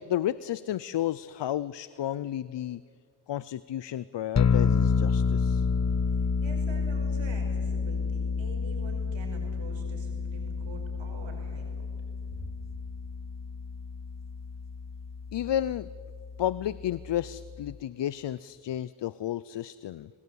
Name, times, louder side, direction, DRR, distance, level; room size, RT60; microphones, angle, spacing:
voice 1, 0.0-2.8 3.3-5.7 15.3-15.9 16.4-20.1, left 11 dB, 70° left, 18 dB, 0.7 m, -32 dB
sound 1, 4.3-17.8, left 5 dB, 35° left, 1.1 m, -30 dB
voice 2, 6.2-11.9 12.3-12.4, right 3 dB, 80° right, 2 dB, 5.7 m, -46 dB
27.0 x 19.5 x 8.4 m, 2.2 s
cardioid pair, 50°, 45 cm